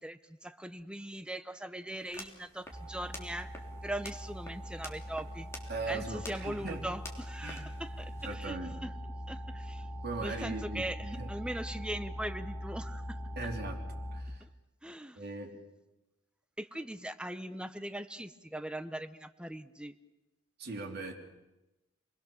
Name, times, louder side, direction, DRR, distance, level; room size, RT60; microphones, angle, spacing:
voice 1, 0.0-5.5 5.9-8.9 9.3-9.9 10.2-13.2 14.4-14.5 14.8-15.2 16.6-19.9, right 1 dB, 5° right, 11 dB, 0.8 m, -40 dB
sound 1, 2.0-8.3, left 1 dB, 15° left, 3.3 m, -50 dB
sound 2, 2.7-14.2, equal, 25° right, 3.5 m, -42 dB
voice 2, 5.7-6.9 7.4-7.6 8.2-8.8 10.0-11.3 13.4-13.8 14.1-14.4 15.2-15.6 20.6-21.1, right 3 dB, 55° right, 2 dB, 3.6 m, -39 dB
29.0 x 21.0 x 7.1 m, 0.99 s
head